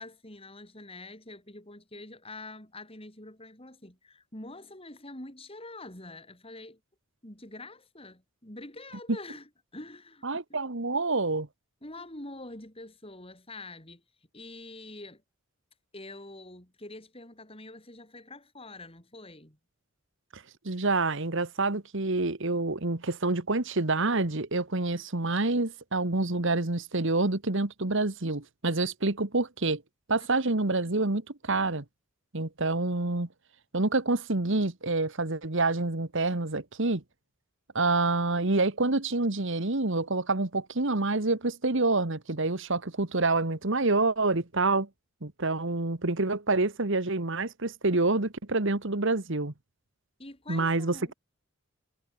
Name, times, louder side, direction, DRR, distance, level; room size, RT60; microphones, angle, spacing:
voice 1, 0.0-6.8 7.2-10.7 11.8-14.0 14.3-15.2 15.9-19.6 30.2-30.3 50.2-51.1, left 2 dB, 25° left, 5.4 m, -45 dB
voice 2, 10.2-11.5 20.3-29.8 30.1-31.8 32.3-33.3 33.7-37.0 37.7-44.9 45.2-49.5 50.5-51.1, right 2 dB, 60° right, 1.6 m, -27 dB
head